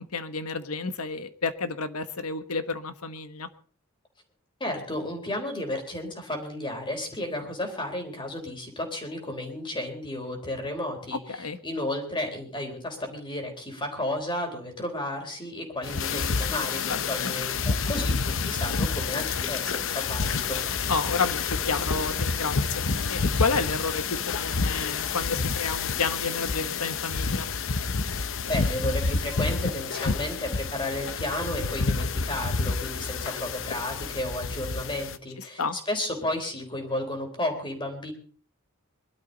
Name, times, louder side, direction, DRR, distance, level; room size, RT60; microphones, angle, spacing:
voice 1, 0.0-3.5 11.3-11.6 16.8-17.3 20.9-27.5 35.4-35.8, left 4 dB, 90° left, 11 dB, 1.3 m, -31 dB
voice 2, 4.6-20.6 28.5-38.1, left 1 dB, 20° left, 3 dB, 3.8 m, -33 dB
sound 1, 15.8-35.2, left 4 dB, 60° left, 0.8 m, -29 dB
22.5 x 12.5 x 4.0 m, 0.43 s
head